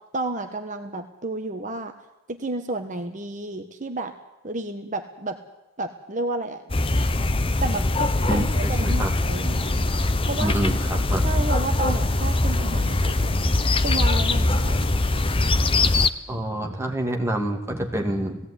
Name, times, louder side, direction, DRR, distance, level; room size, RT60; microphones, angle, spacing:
voice 1, 0.1-1.9 2.3-4.1 4.4-5.4 5.8-6.6 7.6-10.5 11.2-14.8, right 2 dB, 35° right, 6 dB, 1.2 m, -31 dB
sound 1, 6.7-16.1, left 2 dB, 25° left, 0.8 m, -22 dB
voice 2, 8.3-9.2 10.4-11.3 16.3-18.4, right 1 dB, 10° right, 1 dB, 2.2 m, -27 dB
19.0 x 16.5 x 9.8 m, 0.93 s
head